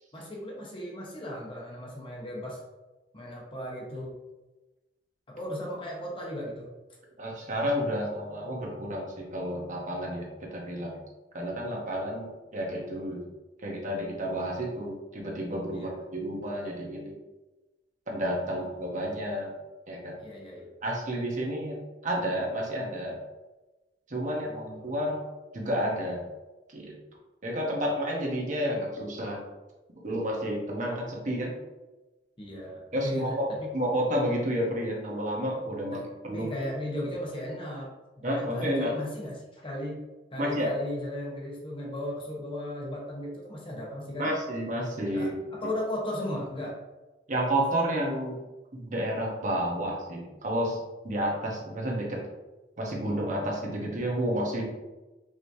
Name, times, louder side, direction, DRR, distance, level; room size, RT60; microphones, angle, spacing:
voice 1, 0.1-2.6 3.1-4.2 5.3-6.7 15.7-16.0 20.2-20.7 24.3-24.9 32.4-33.7 35.9-36.0 36.3-37.9 38.4-40.0 40.3-44.3 45.1-46.8, left 1 dB, 30° left, -2 dB, 1.0 m, -36 dB
voice 2, 7.2-11.0 11.3-13.2 13.6-17.1 18.1-19.5 19.9-20.2 20.8-21.8 22.0-23.2 24.1-25.2 25.5-26.2 26.7-26.9 27.4-29.4 30.0-31.5 32.9-36.0 36.2-36.5 38.2-38.9 40.4-40.7 44.2-45.3 47.3-48.4 48.7-52.2 52.8-54.7, equal, 45° right, -1 dB, 1.0 m, -30 dB
4.9 x 3.1 x 2.7 m, 1.1 s
head